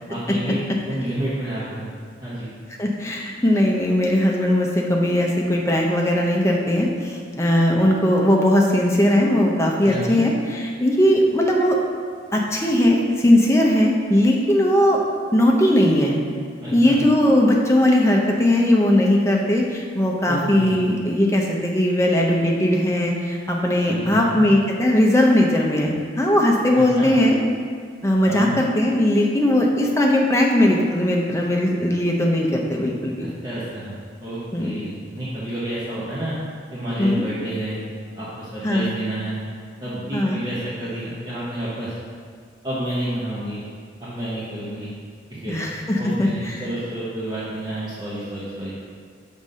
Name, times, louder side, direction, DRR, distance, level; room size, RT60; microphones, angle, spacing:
voice 1, 0.1-0.6 0.9-1.9 2.2-2.5 9.8-10.2 16.6-17.0 20.3-20.8 23.9-24.4 26.8-27.2 28.2-28.6 33.2-34.0 34.2-36.3 36.7-37.8 38.1-39.4 39.8-41.9 42.6-43.6 44.0-44.9 45.3-45.6 46.0-48.7, right 1 dB, 25° right, -10 dB, 1.0 m, -30 dB
voice 2, 2.8-11.8 12.3-15.0 15.3-16.1 16.7-27.4 28.0-33.3 34.5-34.8 37.0-37.2 38.6-38.9 40.1-40.4 45.5-46.6, left 1 dB, 15° left, -1 dB, 0.6 m, -19 dB
5.9 x 3.6 x 5.3 m, 2.1 s
head